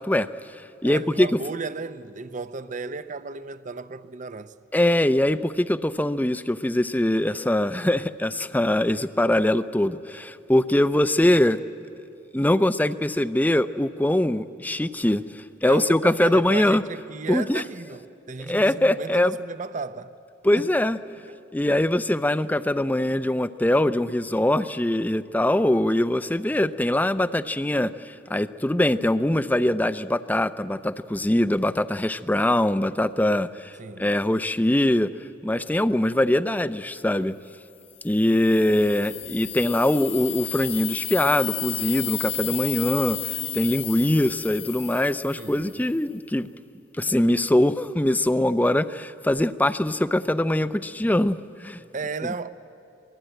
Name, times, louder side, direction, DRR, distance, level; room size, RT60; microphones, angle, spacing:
voice 1, 0.0-1.4 4.7-11.6 12.3-16.8 17.3-17.6 18.4-19.3 20.4-21.0 21.5-35.1 35.4-37.3 38.0-46.5 47.0-51.8, left 1 dB, 10° left, 0.5 m, -22 dB
voice 2, 0.8-4.5 7.3-7.4 15.7-20.1 20.5-20.7 21.3-21.4 33.8-34.1 45.4-45.8 51.9-52.5, right 4 dB, 40° right, 0.6 m, -34 dB
sound 1, 38.0-45.9, left 12 dB, 85° left, 1.4 m, -33 dB
25.5 x 20.0 x 9.1 m
head